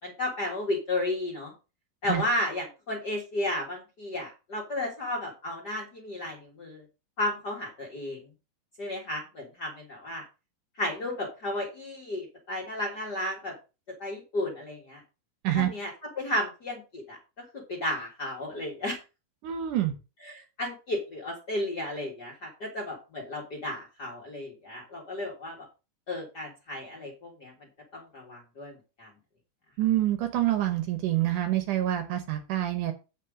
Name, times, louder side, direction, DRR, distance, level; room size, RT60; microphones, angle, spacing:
voice 1, 0.0-1.5 2.0-6.8 7.2-8.2 8.8-10.2 10.8-13.5 14.0-15.0 15.5-15.9 16.1-17.2 17.7-19.0 20.2-25.5 26.1-27.5 27.9-29.1, left 1 dB, 40° left, -1 dB, 1.7 m, -33 dB
voice 2, 19.4-19.9 29.8-32.9, right 13 dB, 70° right, 7 dB, 2.2 m, -26 dB
8.3 x 5.7 x 5.0 m, 0.30 s
omnidirectional pair, 4.2 m